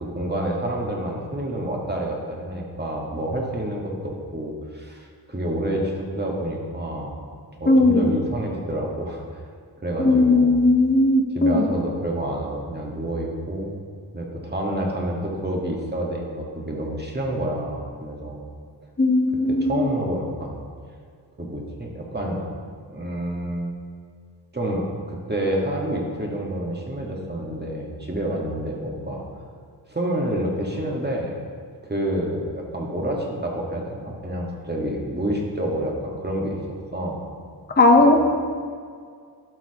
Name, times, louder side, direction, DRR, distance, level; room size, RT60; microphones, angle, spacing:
voice 1, 0.0-7.2 7.5-9.2 9.8-10.5 11.3-13.8 14.1-18.4 19.5-20.6 21.4-22.5 22.9-23.7 24.5-29.2 29.9-31.4 31.8-37.2 38.0-38.2, right 1 dB, 20° right, -1 dB, 1.6 m, -28 dB
voice 2, 7.7-8.1 10.0-11.6 19.0-19.9 37.8-38.1, left 2 dB, 25° left, 2 dB, 0.9 m, -17 dB
12.5 x 5.8 x 2.9 m, 2.1 s
cardioid pair, 65°, 44 cm